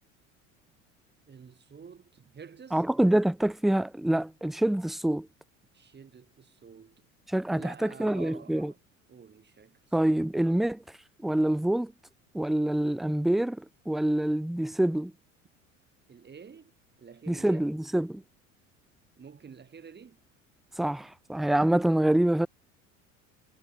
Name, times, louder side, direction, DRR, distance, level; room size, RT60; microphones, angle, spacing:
voice 1, 1.3-2.8 5.7-7.1 7.5-8.8 9.1-10.1 16.1-16.7 17.0-17.7 19.2-20.2, right 6 dB, 25° right, 6.6 m, -49 dB
voice 2, 2.7-5.3 7.3-8.7 9.9-10.8 11.2-11.9 12.3-15.1 17.3-18.2 20.8-22.5, right 1 dB, ahead, 0.4 m, -26 dB
figure-of-eight pair, 65°, 40 cm